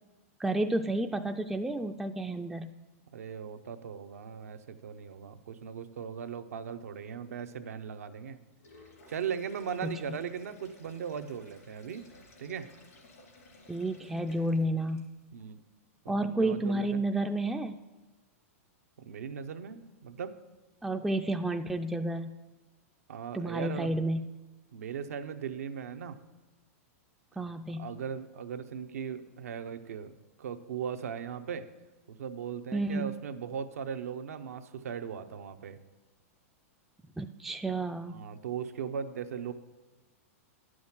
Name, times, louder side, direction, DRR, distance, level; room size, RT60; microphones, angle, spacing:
voice 1, 0.4-2.7 9.8-10.2 13.7-15.1 16.1-17.8 20.8-22.3 23.3-24.2 27.4-27.9 32.7-33.1 37.2-38.2, right 1 dB, 5° right, 5 dB, 0.3 m, -31 dB
voice 2, 3.1-8.4 9.1-12.1 12.4-12.7 15.3-15.6 16.0-17.0 19.0-20.4 23.1-23.9 24.7-26.2 27.8-30.1 30.4-31.7 32.1-35.8 38.1-39.5, right 7 dB, 85° right, 9 dB, 0.8 m, -38 dB
Sink (filling or washing), 8.5-15.3, left 2 dB, 90° left, 3.5 m, -57 dB
9.6 x 6.3 x 7.2 m, 1.2 s
hypercardioid pair, 130°, 8 cm